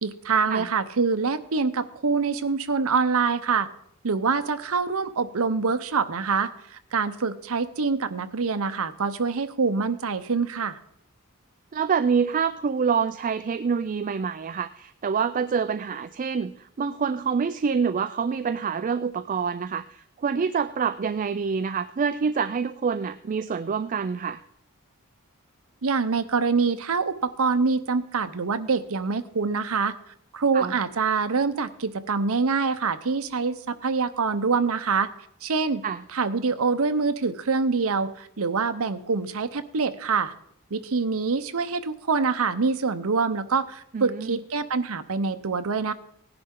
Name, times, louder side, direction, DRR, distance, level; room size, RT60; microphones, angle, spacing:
voice 1, 0.0-3.7 4.0-10.8 25.8-29.9 30.3-35.1 35.4-35.8 36.1-40.3 40.7-45.9, right 4 dB, 70° right, 11 dB, 0.8 m, -25 dB
voice 2, 11.7-24.4 30.5-30.7 35.8-36.0 43.9-44.4, right 6 dB, 35° right, 13 dB, 0.4 m, -26 dB
18.0 x 10.5 x 3.8 m, 0.72 s
head